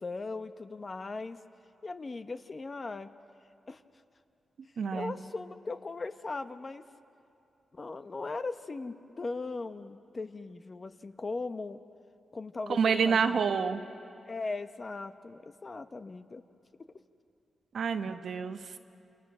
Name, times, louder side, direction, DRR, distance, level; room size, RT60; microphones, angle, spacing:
voice 1, 0.0-1.4 1.8-3.1 3.7-3.8 4.9-6.8 7.7-11.8 12.3-14.0 14.3-16.4, left 3 dB, 35° left, 9 dB, 1.0 m, -39 dB
voice 2, 4.8-5.2 12.7-13.8 17.7-18.8, right 6 dB, 70° right, 7 dB, 1.2 m, -28 dB
29.5 x 28.5 x 6.2 m, 2.7 s
cardioid pair, 95°, 0 cm